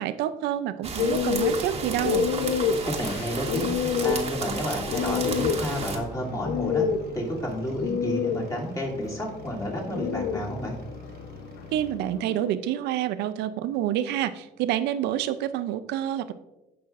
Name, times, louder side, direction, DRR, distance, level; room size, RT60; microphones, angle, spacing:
voice 1, 0.0-2.3 11.7-16.3, right 11 dB, 85° right, 12 dB, 0.6 m, -28 dB
sound 1, 0.8-6.0, right 4 dB, 35° right, 1.4 m, -33 dB
sound 2, 1.0-12.5, left 6 dB, 75° left, 0.7 m, -29 dB
voice 2, 2.8-6.8 7.1-10.8, equal, 20° left, -3 dB, 2.7 m, -31 dB
sound 3, 5.2-12.0, right 3 dB, 65° right, 1.0 m, -43 dB
16.0 x 5.7 x 2.5 m, 0.98 s
cardioid pair, 110°, 17 cm